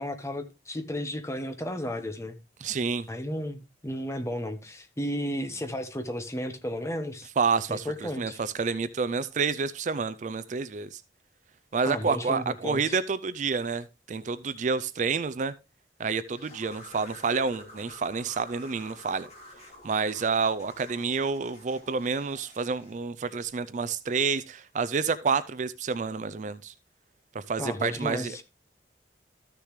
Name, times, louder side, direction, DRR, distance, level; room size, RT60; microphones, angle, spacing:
voice 1, 0.0-2.4 3.1-7.3 7.7-8.4 11.8-13.0 27.6-28.4, equal, 15° left, 1.0 m, -33 dB
voice 2, 2.6-3.1 7.4-11.0 11.7-15.5 16.0-19.3 19.8-26.7 27.3-28.4, right 5 dB, 40° right, 0.4 m, -29 dB
sound 1, 16.4-23.0, left 1 dB, 35° left, 2.8 m, -49 dB
13.5 x 6.7 x 3.1 m
head